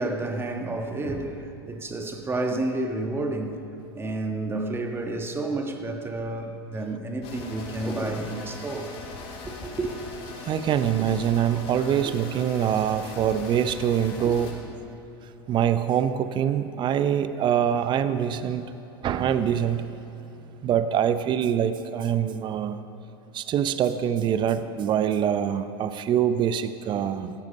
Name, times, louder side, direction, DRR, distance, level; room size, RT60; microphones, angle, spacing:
voice 1, 0.0-3.6 3.9-8.9 9.4-9.9, right 2 dB, 20° right, 1.6 m, -30 dB
sound 1, 7.2-14.5, left 3 dB, 45° left, 3.2 m, -40 dB
voice 2, 10.4-14.6 15.5-18.7 19.0-19.9 20.6-22.8 23.3-27.3, right 9 dB, 35° right, 0.8 m, -24 dB
16.5 x 13.0 x 5.4 m
hypercardioid pair, 95°, 13 cm